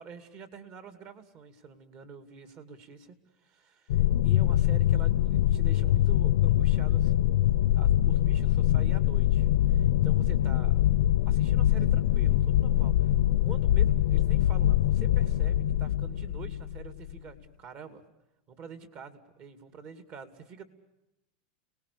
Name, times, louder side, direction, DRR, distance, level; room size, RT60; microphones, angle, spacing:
voice 1, 0.0-7.2 7.7-10.8 11.3-13.1 13.4-18.0 18.5-20.6, right 6 dB, 45° right, 9 dB, 2.8 m, -47 dB
sound 1, 3.9-17.2, left 13 dB, 80° left, 0.8 m, -24 dB
30.0 x 19.5 x 6.9 m, 0.94 s
supercardioid pair, 135°, 4 cm